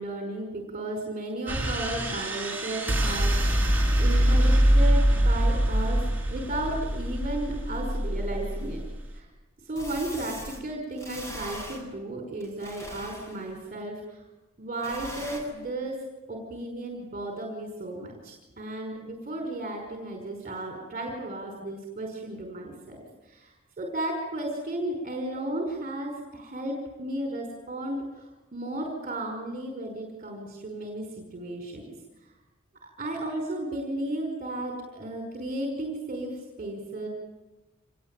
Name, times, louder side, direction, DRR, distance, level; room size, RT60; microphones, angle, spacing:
voice 1, 0.0-3.6 4.0-6.0 6.3-8.8 9.1-9.3 9.6-14.2 14.6-16.0 16.3-31.9 32.2-32.3 32.8-37.1, right 1 dB, 35° right, 1 dB, 5.3 m, -34 dB
sound 1, 1.5-9.2, equal, 10° right, 5.8 m, -24 dB
sound 2, 8.6-8.7 9.8-10.6 11.0-11.8 12.4-13.5 14.8-15.4, equal, 15° left, 7.3 m, -40 dB
27.0 x 22.0 x 9.2 m, 1.1 s
head